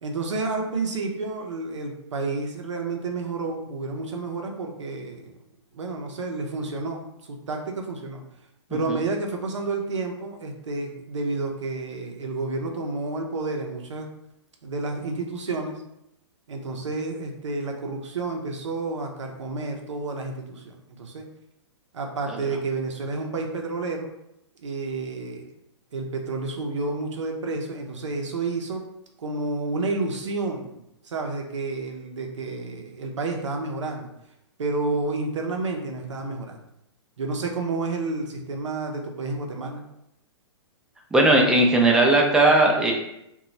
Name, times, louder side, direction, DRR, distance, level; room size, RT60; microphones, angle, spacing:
voice 1, 0.0-5.3 5.7-7.0 7.3-8.2 8.7-14.1 14.6-15.8 16.5-21.2 21.9-24.1 24.6-25.5 25.9-28.8 29.2-34.1 34.6-36.5 37.2-39.8, right 3 dB, 90° right, 2 dB, 0.6 m, -30 dB
voice 2, 41.1-42.9, right 2 dB, 5° right, 0 dB, 0.3 m, -17 dB
2.2 x 2.0 x 3.8 m, 0.82 s
hypercardioid pair, 135°, 15 cm